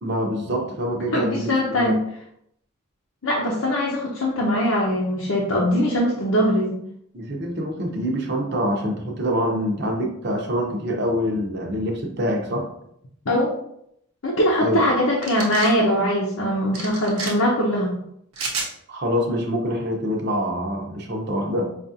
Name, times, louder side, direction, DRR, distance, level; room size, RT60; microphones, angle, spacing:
voice 1, 0.0-2.0 7.1-12.7 14.6-14.8 18.9-21.7, equal, 50° right, 2 dB, 0.7 m, -25 dB
voice 2, 1.1-2.0 3.2-6.8 13.3-13.5 14.2-18.0, equal, 85° left, -5 dB, 0.7 m, -21 dB
sound 1, 15.2-15.7 16.7-17.3 18.3-18.7, right 3 dB, 90° right, 0.9 m, -29 dB
5.1 x 2.4 x 2.7 m, 0.74 s
head